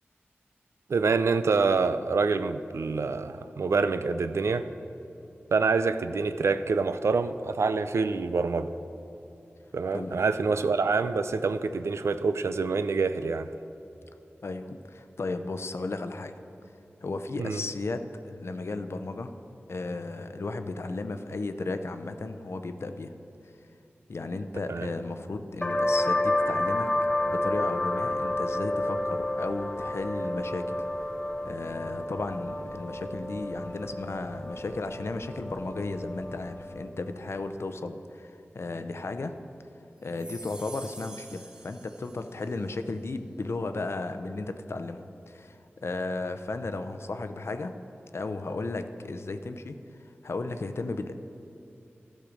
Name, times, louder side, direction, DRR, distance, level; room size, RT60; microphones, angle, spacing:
voice 1, 0.9-4.7 5.5-8.7 9.7-13.5 17.4-17.6 24.7-24.9, right 4 dB, 85° right, 11 dB, 0.4 m, -26 dB
voice 2, 14.4-16.3 17.0-19.3 19.7-23.1 24.1-26.9 27.2-30.8 31.4-39.3 40.0-47.7 48.1-49.8 50.2-51.1, left 3 dB, 70° left, 8 dB, 0.6 m, -34 dB
sound 1, 25.6-36.9, left 1 dB, 15° left, 0.9 m, -30 dB
sound 2, 40.0-42.6, right 1 dB, 15° right, 1.3 m, -47 dB
13.5 x 6.6 x 5.1 m, 3.0 s
cardioid pair, 40°, 5 cm